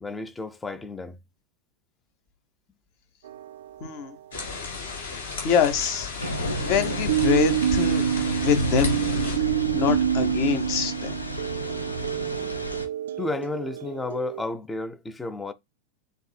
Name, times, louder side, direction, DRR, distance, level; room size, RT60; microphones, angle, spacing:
voice 1, 0.0-1.2 13.2-15.5, left 3 dB, 10° left, 0.5 m, -32 dB
sound 1, 3.2-4.1 6.6-14.4, right 11 dB, 60° right, 0.3 m, -28 dB
voice 2, 3.8-4.1 5.4-6.1 6.6-8.0 8.4-8.9 9.7-11.2, left 7 dB, 45° left, 0.9 m, -24 dB
sound 2, 4.3-9.4, left 4 dB, 65° left, 2.2 m, -35 dB
sound 3, 6.2-12.9, equal, 80° left, 0.7 m, -31 dB
7.7 x 2.7 x 2.2 m
figure-of-eight pair, 90°, 0 cm